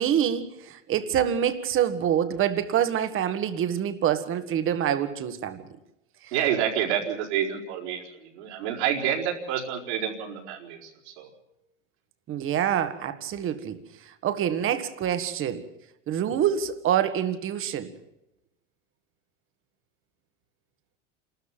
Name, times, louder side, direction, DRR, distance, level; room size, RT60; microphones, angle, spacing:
voice 1, 0.0-5.7 6.2-6.3 12.3-15.6 16.1-17.9, right 9 dB, 35° right, 1.8 m, -26 dB
voice 2, 6.3-11.3, right 9 dB, 70° right, 4.6 m, -28 dB
27.5 x 13.5 x 7.5 m
hypercardioid pair, 105°, 35 cm